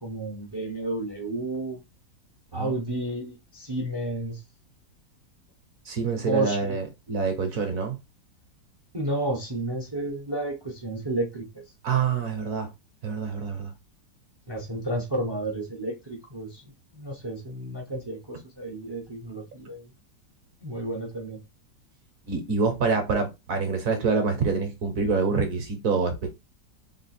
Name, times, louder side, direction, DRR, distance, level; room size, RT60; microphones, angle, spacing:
voice 1, 0.0-1.8 2.5-4.4 6.2-6.8 8.9-11.5 14.5-16.6 16.9-19.9 20.6-21.4, right 2 dB, 35° right, 0.4 m, -31 dB
voice 2, 5.8-8.0 11.8-12.7 13.0-13.7 22.3-26.3, right 4 dB, 55° right, 1.2 m, -26 dB
3.6 x 2.4 x 4.1 m
omnidirectional pair, 1.9 m